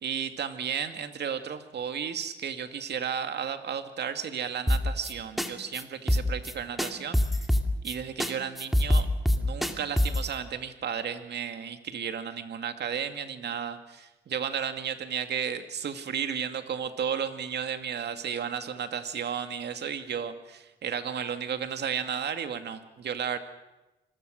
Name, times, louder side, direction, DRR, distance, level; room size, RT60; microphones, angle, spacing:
voice 1, 0.0-7.5 7.8-9.1 9.4-23.4, right 7 dB, 60° right, 8 dB, 2.3 m, -33 dB
sound 1, 4.7-5.1 5.4-5.5 5.7-5.8 6.1-7.9 8.2-8.3 8.6-10.3, left 1 dB, ahead, 2.3 m, -24 dB
26.5 x 21.5 x 6.6 m, 1.0 s
cardioid pair, 90°, 20 cm